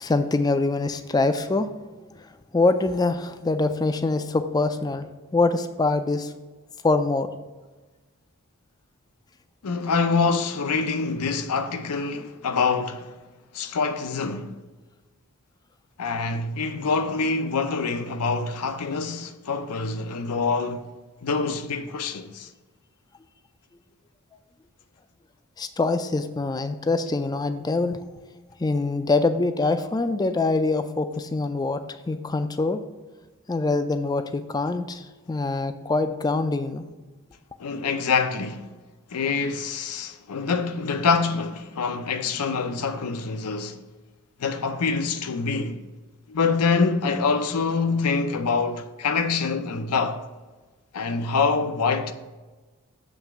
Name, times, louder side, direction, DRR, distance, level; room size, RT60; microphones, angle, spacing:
voice 1, 0.0-1.7 2.5-5.1 5.3-6.3 6.8-7.3 25.6-28.0 28.6-32.8 33.5-36.9, left 3 dB, 15° left, 0.3 m, -24 dB
voice 2, 9.6-13.1 13.5-14.5 16.0-20.9 21.2-22.5 37.6-38.7 39.1-43.8 44.4-45.8 46.3-50.2 50.9-52.1, left 4 dB, 90° left, 0.6 m, -25 dB
7.2 x 3.3 x 5.9 m
head